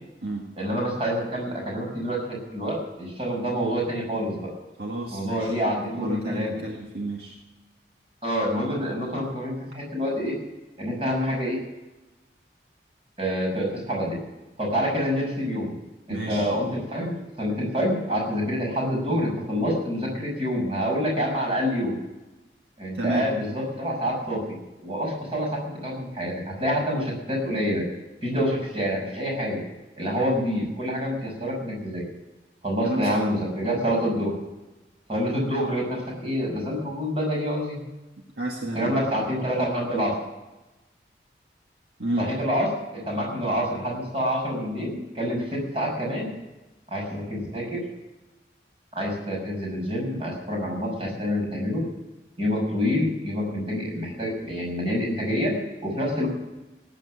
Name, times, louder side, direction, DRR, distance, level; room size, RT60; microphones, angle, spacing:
voice 1, 0.6-4.5 5.1-6.6 8.2-10.3 10.8-11.6 13.2-14.2 14.6-15.7 16.1-21.9 22.8-24.4 24.8-27.8 28.2-29.6 30.0-32.0 32.6-34.4 35.1-37.8 38.7-40.1 42.2-42.7 42.9-46.3 46.9-47.8 48.9-51.8 52.4-55.5 55.8-56.3, equal, 30° right, -1 dB, 6.3 m, -27 dB
voice 2, 4.8-5.5 5.9-7.3 16.1-16.5 22.9-23.3 32.8-33.3 38.4-39.0 42.0-42.3, right 1 dB, 60° right, -1 dB, 2.1 m, -30 dB
18.0 x 9.3 x 6.5 m, 1.1 s
head